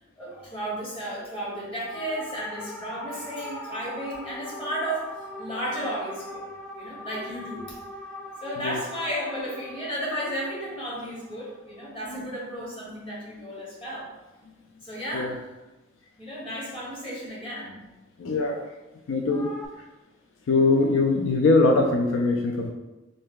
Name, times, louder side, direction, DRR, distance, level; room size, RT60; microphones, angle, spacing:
voice 1, 0.2-5.1 5.4-6.4 6.7-7.8 8.4-14.1 14.8-15.5 16.2-17.8, equal, 30° left, -6 dB, 1.2 m, -33 dB
sound 1, 1.8-12.3 19.3-19.7, left 1 dB, 5° left, 0.3 m, -41 dB
voice 2, 18.2-18.6 19.1-19.5 20.5-22.7, left 3 dB, 85° left, 3 dB, 0.4 m, -22 dB
3.2 x 2.6 x 3.7 m, 1.1 s
head